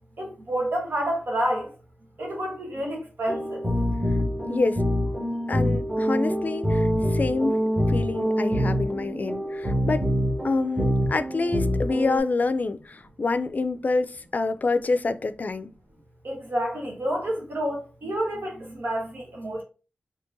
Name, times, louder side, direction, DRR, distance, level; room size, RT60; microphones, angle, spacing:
voice 1, 0.2-1.7 2.2-3.6 16.2-19.6, right 1 dB, 75° right, 1.1 m, -29 dB
sound 1, 3.3-12.2, equal, 20° right, 1.4 m, -25 dB
voice 2, 4.5-4.8 5.5-10.1 10.4-15.7, left 3 dB, 50° left, 0.4 m, -27 dB
4.5 x 2.9 x 2.7 m
wide cardioid pair, 80°, 4 cm